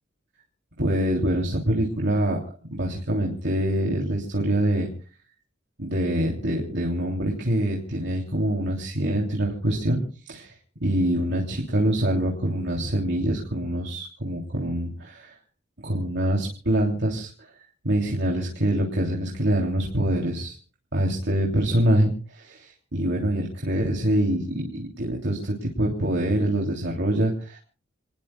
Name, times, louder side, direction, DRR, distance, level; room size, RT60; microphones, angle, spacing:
voice 1, 0.8-2.4 2.7-4.9 5.8-10.0 10.3-10.5 10.8-15.3 15.8-17.3 17.8-20.6 20.9-27.6, right 1 dB, 65° right, -1 dB, 3.2 m, -25 dB
28.5 x 20.0 x 2.4 m, 0.39 s
head